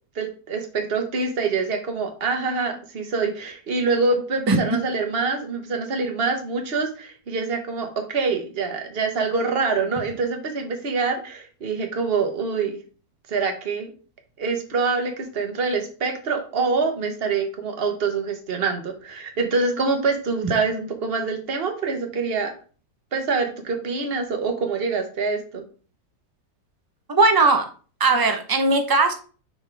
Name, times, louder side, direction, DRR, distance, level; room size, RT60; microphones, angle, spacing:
voice 1, 0.1-12.8 13.3-13.9 14.4-22.5 23.1-25.6, right 4 dB, 40° right, 4 dB, 1.3 m, -25 dB
voice 2, 27.1-27.7 28.0-29.1, right 3 dB, 20° right, 6 dB, 0.6 m, -18 dB
6.9 x 5.7 x 3.4 m, 0.38 s
omnidirectional pair, 1.8 m